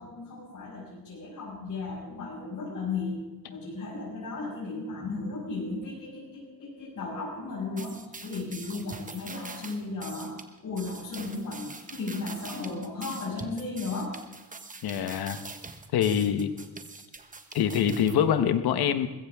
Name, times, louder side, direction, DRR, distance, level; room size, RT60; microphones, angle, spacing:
voice 1, 0.0-3.2 3.5-14.2, left 3 dB, 55° left, -7 dB, 6.5 m, -35 dB
sound 1, 7.8-18.1, right 3 dB, 20° right, 1.3 m, -44 dB
voice 2, 14.8-15.4 15.9-16.5 17.5-19.1, left 8 dB, 85° left, 10 dB, 1.3 m, -25 dB
21.0 x 16.0 x 3.6 m, 1.1 s
cardioid pair, 120°, 37 cm